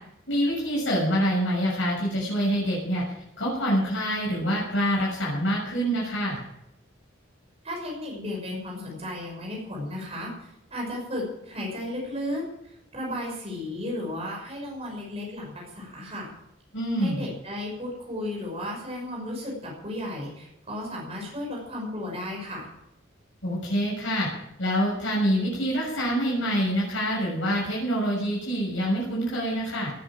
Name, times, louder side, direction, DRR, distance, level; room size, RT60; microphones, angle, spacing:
voice 1, 0.3-3.0 3.4-6.4 16.7-17.3 23.4-24.3 24.6-29.9, equal, 70° left, -5 dB, 6.8 m, -26 dB
voice 2, 7.6-16.3 17.0-22.7, left 1 dB, 30° right, -1 dB, 6.2 m, -34 dB
18.5 x 10.0 x 7.6 m, 0.82 s
head